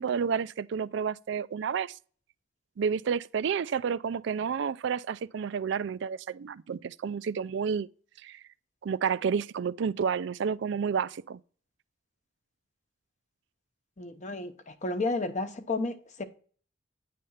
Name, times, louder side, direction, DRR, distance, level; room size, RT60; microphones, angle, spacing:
voice 1, 0.0-2.0 2.8-7.9 8.2-8.4 8.8-11.4, right 6 dB, 65° right, 0.4 m, -30 dB
voice 2, 14.0-16.2, left 3 dB, 40° left, 0.8 m, -32 dB
9.5 x 3.4 x 5.6 m
head